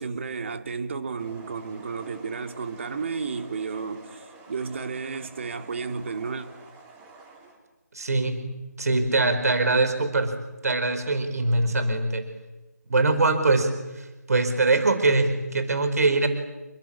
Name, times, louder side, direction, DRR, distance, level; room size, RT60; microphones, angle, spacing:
voice 1, 0.0-6.5, right 5 dB, 45° right, 2.7 m, -32 dB
sound 1, 1.2-7.6, right 3 dB, 15° right, 4.4 m, -48 dB
voice 2, 7.9-8.4 8.8-10.3 10.6-12.2 12.9-16.3, right 3 dB, 65° right, 4.6 m, -23 dB
29.5 x 21.5 x 8.7 m
figure-of-eight pair, 160°, 9 cm